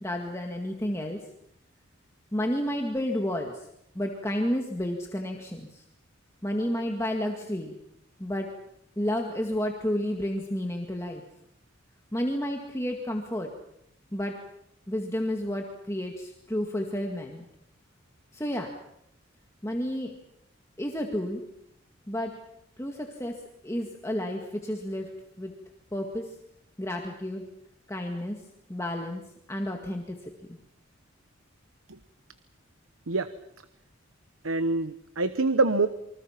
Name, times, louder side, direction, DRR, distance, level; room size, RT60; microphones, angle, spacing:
voice 1, 0.0-1.2 2.3-3.7 4.0-5.8 6.4-7.8 8.2-8.5 9.0-11.2 12.1-13.5 14.1-14.4 14.9-17.5 18.3-18.7 19.6-20.1 20.8-21.4 22.1-22.3 22.8-25.1 25.4-25.5 25.9-26.3 26.8-27.5 27.9-28.4 28.7-29.2 29.5-30.6, equal, 15° left, 1 dB, 1.9 m, -31 dB
voice 2, 34.4-35.9, right 3 dB, 85° right, 11 dB, 1.1 m, -25 dB
28.0 x 25.0 x 5.9 m, 0.77 s
head